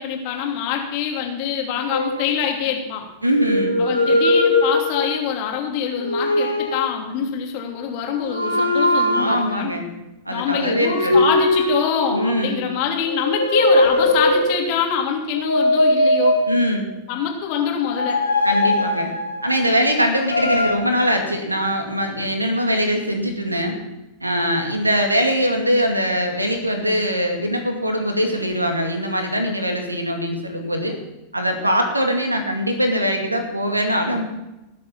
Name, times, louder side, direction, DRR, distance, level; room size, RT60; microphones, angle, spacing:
voice 1, 0.0-3.0 3.8-9.7 10.3-16.4 17.1-18.2, left 7 dB, 45° left, 1 dB, 2.9 m, -25 dB
sound 1, 1.9-2.8 3.3-5.4 6.0-6.9 8.2-9.6 10.8-12.5 13.0-14.7 15.3-16.9 17.8-19.7 20.2-20.7, left 1 dB, 85° left, 1.7 m, -20 dB
voice 2, 3.2-3.8 9.1-9.9 10.3-11.3 12.1-12.6 16.5-16.9 18.4-19.1 19.4-23.8 24.2-31.0 31.3-34.2, equal, 85° right, 4 dB, 2.3 m, -22 dB
19.0 x 7.9 x 5.8 m, 0.98 s
figure-of-eight pair, 90°, 0 cm